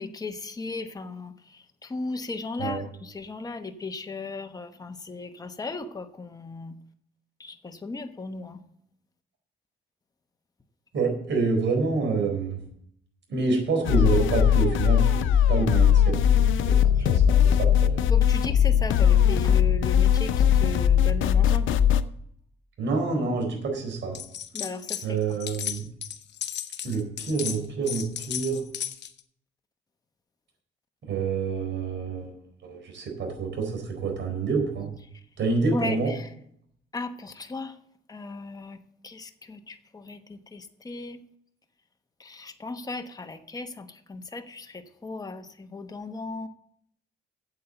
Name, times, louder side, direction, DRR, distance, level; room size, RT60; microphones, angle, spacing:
voice 1, 0.0-6.8 7.4-8.6 17.0-17.1 18.0-21.8 24.5-25.4 35.1-35.2 35.7-36.3 36.9-37.8 38.1-41.2 42.2-46.5, left 3 dB, 20° left, 6 dB, 1.0 m, -36 dB
voice 2, 10.9-12.6 13.3-18.1 22.8-24.2 25.0-25.8 26.8-28.6 31.1-32.3 32.6-34.9 35.4-36.1, right 4 dB, 65° right, 2 dB, 4.4 m, -27 dB
sound 1, 13.8-22.0, left 9 dB, 75° left, 0.7 m, -20 dB
sound 2, 24.1-25.1 25.3-29.2, left 9 dB, 60° left, 1.0 m, -34 dB
8.4 x 8.0 x 7.0 m, 0.67 s
cardioid pair, 90°, 20 cm